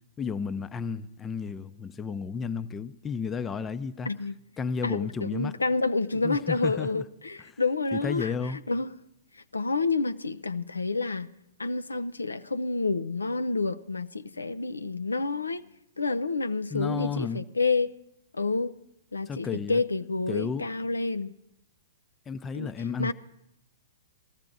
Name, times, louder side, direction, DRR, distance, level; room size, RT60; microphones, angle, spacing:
voice 1, 0.2-4.1 4.6-5.5 6.1-7.0 7.5-7.6 7.9-8.6 16.7-17.4 19.3-19.8 20.3-20.7 22.3-23.1, left 6 dB, 20° left, 0.6 m, -32 dB
voice 2, 4.1-4.4 4.8-8.3 8.7-8.9 9.3-11.3 11.6-15.7 16.0-17.9 18.3-18.7 19.1-21.3 22.5-22.7 23.0-23.1, left 3 dB, 85° left, 0.4 m, -29 dB
18.0 x 14.0 x 3.9 m
figure-of-eight pair, 115°, 0 cm